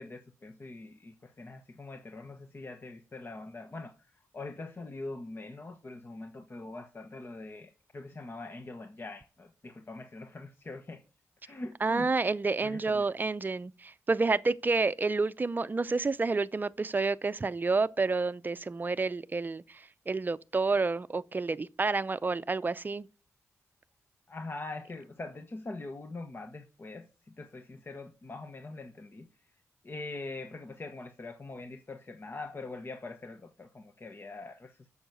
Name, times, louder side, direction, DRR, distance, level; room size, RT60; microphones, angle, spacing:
voice 1, 0.0-11.0 11.4-12.1 12.6-13.1 24.3-29.3 29.8-34.9, left 2 dB, 40° left, 1.2 m, -43 dB
voice 2, 11.8-23.1, right 3 dB, 35° right, 0.6 m, -29 dB
8.8 x 7.1 x 6.8 m
cardioid pair, 60°, 6 cm